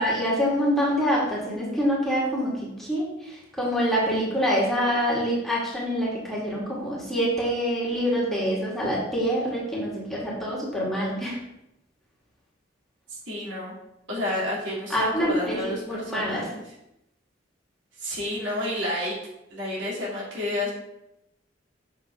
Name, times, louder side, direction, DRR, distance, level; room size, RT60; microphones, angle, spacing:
voice 1, 0.0-2.5 2.8-11.4 14.9-16.4, equal, ahead, -6 dB, 1.9 m, -26 dB
voice 2, 13.3-13.7 14.1-16.6 18.0-19.1 19.5-20.7, left 1 dB, 75° right, -5 dB, 2.9 m, -30 dB
7.0 x 5.7 x 3.7 m, 0.86 s
head